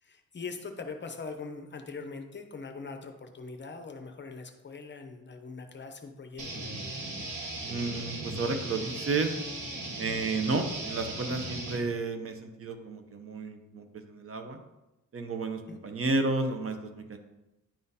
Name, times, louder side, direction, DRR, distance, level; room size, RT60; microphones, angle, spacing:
voice 1, 0.0-6.6 15.7-15.8, left 4 dB, 35° left, 6 dB, 0.6 m, -42 dB
sound 1, 6.4-11.8, right 2 dB, 70° right, 1.3 m, -37 dB
voice 2, 7.6-9.3 10.0-14.6 15.1-17.2, right 3 dB, 45° right, 6 dB, 0.7 m, -32 dB
10.0 x 3.7 x 2.7 m, 0.97 s
wide cardioid pair, 130°, 33 cm